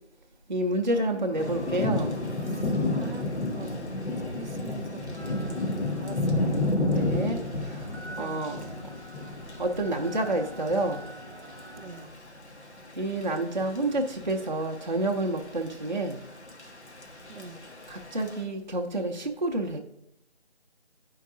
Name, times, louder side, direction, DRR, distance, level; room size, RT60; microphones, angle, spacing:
voice 1, 0.5-2.3 6.8-8.6 9.6-11.1 13.0-16.2 17.9-19.8, right 1 dB, 45° right, 2 dB, 0.5 m, -29 dB
sound 1, 0.9-4.8 5.2-12.0, left 1 dB, 30° left, 0.8 m, -46 dB
voice 2, 1.3-1.6 2.5-6.6 8.0-8.8 11.8-12.1 17.3-17.6, right 3 dB, 85° right, 10 dB, 0.7 m, -45 dB
Thunder / Rain, 1.4-18.4, left 2 dB, 90° left, 1.1 m, -32 dB
9.3 x 4.5 x 2.5 m, 0.82 s
figure-of-eight pair, 170°, 33 cm